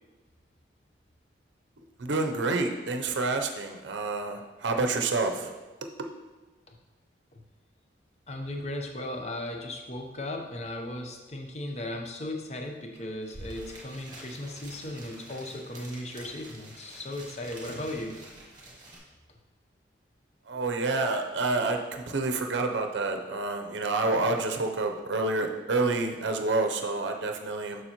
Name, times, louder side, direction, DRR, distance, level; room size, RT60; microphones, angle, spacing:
voice 1, 2.0-5.5 6.0-6.1 20.5-27.8, right 3 dB, 75° right, 4 dB, 0.6 m, -28 dB
voice 2, 8.3-18.2, left 1 dB, 35° left, 3 dB, 0.7 m, -36 dB
Paper bag, 13.0-13.1 13.2-19.0, right 1 dB, 20° right, 1.3 m, -47 dB
7.0 x 6.1 x 2.9 m, 1.2 s
head